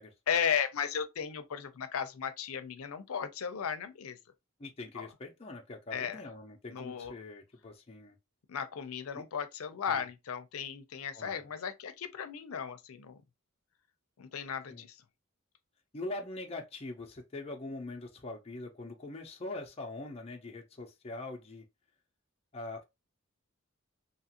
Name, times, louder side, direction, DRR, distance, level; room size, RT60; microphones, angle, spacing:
voice 1, 0.3-4.2 5.0-5.1 5.9-6.2 6.7-7.1 8.5-13.2 14.2-15.0, left 7 dB, 85° left, 0.5 m, -35 dB
voice 2, 4.6-8.2 9.1-9.2 9.9-10.1 11.1-11.5 14.7-14.8 15.9-21.7 22.5-22.8, left 2 dB, 30° left, 0.5 m, -43 dB
2.8 x 2.4 x 2.8 m
head